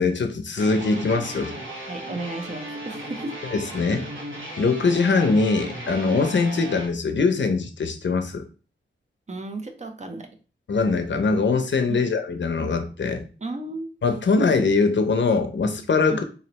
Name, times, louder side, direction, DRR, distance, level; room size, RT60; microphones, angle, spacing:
voice 1, 0.0-1.5 3.5-4.1 4.6-8.5 10.7-13.3 14.0-16.2, left 4 dB, 70° left, 7 dB, 0.6 m, -22 dB
sound 1, 0.6-6.9, right 1 dB, 90° right, 1.1 m, -36 dB
voice 2, 1.9-3.4 9.3-10.3 11.9-12.1 13.4-13.9 16.1-16.2, right 2 dB, 35° right, 4 dB, 0.7 m, -33 dB
3.9 x 3.1 x 2.9 m, 0.36 s
wide cardioid pair, 100°, 20 cm